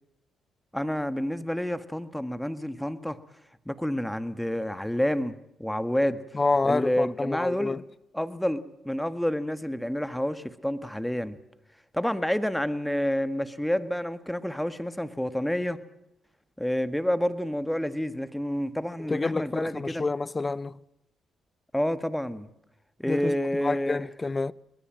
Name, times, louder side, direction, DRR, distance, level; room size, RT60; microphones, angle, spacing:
voice 1, 0.7-3.2 3.6-6.2 6.6-7.8 8.1-11.4 11.9-15.8 16.6-20.0 21.7-22.5 23.0-24.0, equal, 5° left, 1.6 m, -29 dB
voice 2, 6.3-7.8 19.1-20.8 23.1-23.4 23.6-24.5, left 3 dB, 30° left, 0.7 m, -28 dB
22.5 x 20.0 x 7.5 m
cardioid pair, 75°, 0 cm